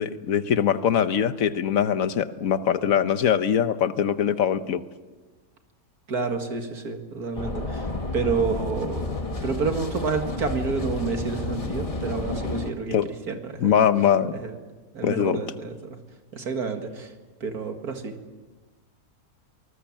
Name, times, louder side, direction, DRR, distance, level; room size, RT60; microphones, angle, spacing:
voice 1, 0.0-4.8 12.9-13.1 13.6-14.4 15.0-15.4, left 8 dB, 70° left, 12 dB, 1.3 m, -22 dB
voice 2, 6.1-7.9 8.1-9.0 9.4-13.0 13.3-13.7 14.3-14.5 14.9-16.0 16.3-17.1 17.4-18.1, right 5 dB, 85° right, 5 dB, 2.5 m, -29 dB
sound 1, 7.4-12.7, left 2 dB, 25° left, 1.4 m, -31 dB
24.5 x 19.5 x 7.4 m, 1.3 s
omnidirectional pair, 1.6 m